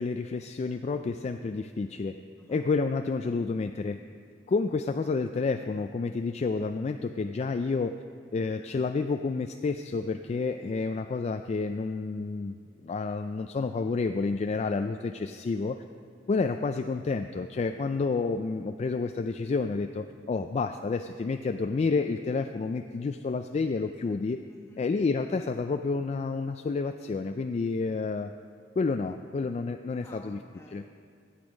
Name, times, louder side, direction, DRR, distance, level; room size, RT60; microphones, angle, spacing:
voice 1, 0.0-2.2 2.5-4.0 4.5-8.0 8.3-12.5 12.8-15.8 16.3-24.4 24.8-28.3 28.8-30.4 30.7-30.8, left 4 dB, 40° left, 7 dB, 0.3 m, -29 dB
voice 2, 24.5-24.8 30.0-31.1, left 1 dB, 15° left, -1 dB, 1.4 m, -53 dB
14.0 x 8.1 x 5.1 m, 2.3 s
head